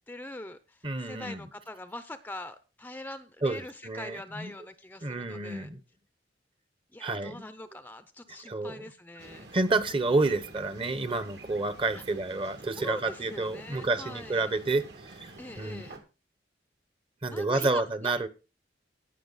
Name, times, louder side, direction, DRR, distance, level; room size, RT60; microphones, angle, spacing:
voice 1, 0.1-5.7 6.9-9.5 11.9-12.0 12.7-14.5 15.4-16.0 17.3-18.1, left 1 dB, 10° left, 0.6 m, -43 dB
voice 2, 0.8-1.4 3.4-4.5 5.0-5.8 7.0-7.4 8.4-8.8 9.5-14.8 15.1-15.9 17.2-18.3, right 3 dB, 30° right, 0.9 m, -29 dB
sound 1, 9.2-16.0, right 2 dB, 65° right, 2.3 m, -48 dB
17.5 x 5.8 x 4.1 m
head